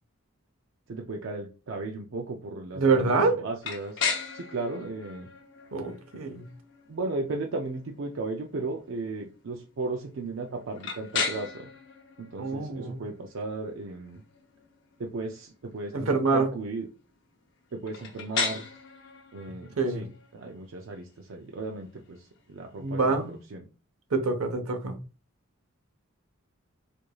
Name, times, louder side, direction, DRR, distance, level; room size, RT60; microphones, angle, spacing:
voice 1, 0.9-4.0 4.3-5.3 6.9-11.7 12.2-14.2 15.0-16.9 17.7-18.7 19.3-23.6, right 3 dB, 65° right, 0.4 m, -35 dB
voice 2, 2.7-3.4 5.7-6.5 12.4-13.0 15.9-16.5 19.8-20.0 22.8-23.3 24.1-25.0, right 3 dB, 85° right, 0.8 m, -25 dB
sound 1, 3.6-23.4, left 5 dB, 55° left, 0.7 m, -38 dB
4.6 x 2.6 x 2.3 m
head